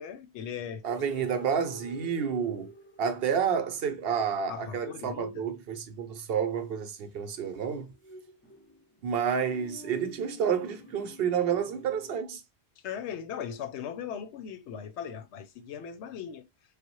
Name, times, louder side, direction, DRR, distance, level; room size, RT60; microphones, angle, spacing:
voice 1, 0.0-0.8 1.2-1.3 4.5-5.5 12.8-16.5, left 8 dB, 85° left, 0.9 m, -38 dB
voice 2, 0.8-2.7 3.0-7.9 9.0-12.4, right 7 dB, 65° right, 0.8 m, -30 dB
sound 1, 0.9-3.5 7.0-12.2, left 1 dB, 20° left, 0.3 m, -49 dB
3.3 x 2.1 x 2.9 m
omnidirectional pair, 1.1 m